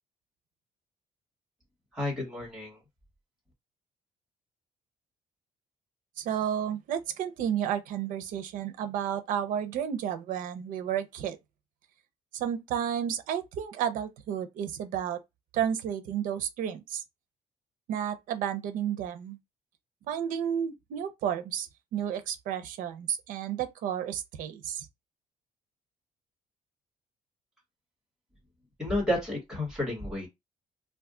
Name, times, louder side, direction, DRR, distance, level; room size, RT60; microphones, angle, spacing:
voice 1, 1.9-2.8 28.8-30.3, left 1 dB, 5° right, 1.4 m, -31 dB
voice 2, 6.2-11.4 12.3-15.2 15.5-17.0 17.9-19.4 20.1-24.9, right 9 dB, 90° right, 0.6 m, -32 dB
2.6 x 2.3 x 3.6 m
cardioid pair, 175°, 14 cm